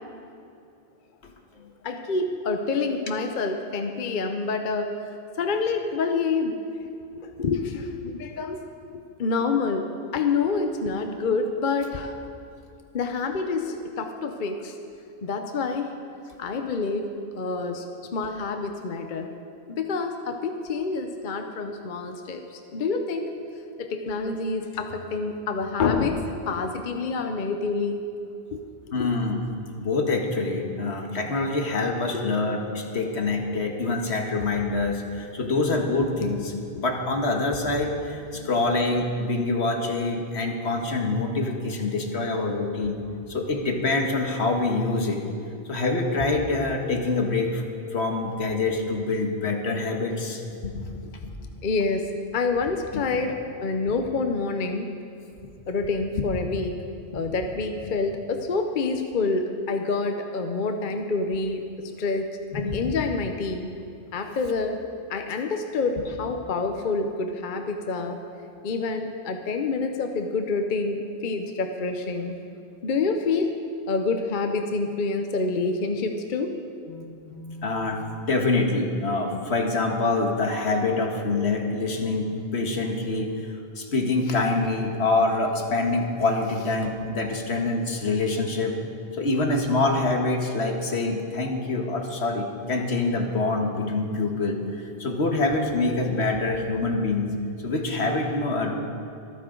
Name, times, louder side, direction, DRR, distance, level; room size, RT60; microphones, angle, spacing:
voice 1, 1.6-4.9 5.4-6.6 7.1-8.7 8.9-9.9 10.1-12.1 12.9-14.7 15.2-15.9 16.4-17.8 18.1-19.3 19.7-23.3 23.8-28.0 28.5-28.6 29.0-29.1 32.1-32.2 38.3-38.5 51.6-54.9 55.7-56.8 57.1-61.6 62.0-62.3 62.5-63.7 64.1-64.8 65.1-68.2 68.6-72.3 72.8-73.5 73.9-76.5, left 4 dB, 50° left, 5 dB, 0.8 m, -27 dB
voice 2, 28.9-29.5 29.8-43.0 43.3-45.2 45.7-47.6 47.9-51.0 51.2-51.3 62.5-62.9 76.9-83.3 83.8-88.8 89.2-94.6 95.0-97.3 97.6-98.7, left 3 dB, 75° left, 2 dB, 1.7 m, -25 dB
25.0 x 9.4 x 3.8 m, 2.5 s
omnidirectional pair, 1.1 m